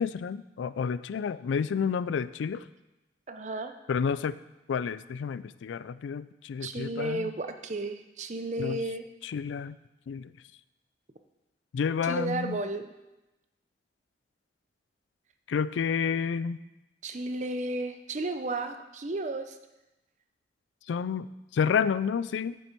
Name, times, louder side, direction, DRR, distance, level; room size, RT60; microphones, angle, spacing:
voice 1, 0.0-2.6 3.9-4.4 4.7-7.3 8.6-8.8 9.2-9.8 10.1-10.3 11.7-12.6 15.5-16.6 20.9-21.3 21.5-22.6, left 6 dB, 85° left, 16 dB, 0.3 m, -30 dB
voice 2, 3.3-3.8 6.6-9.0 12.0-12.9 17.0-19.6, right 2 dB, 40° right, 8 dB, 0.6 m, -33 dB
8.3 x 7.2 x 4.5 m, 0.98 s
head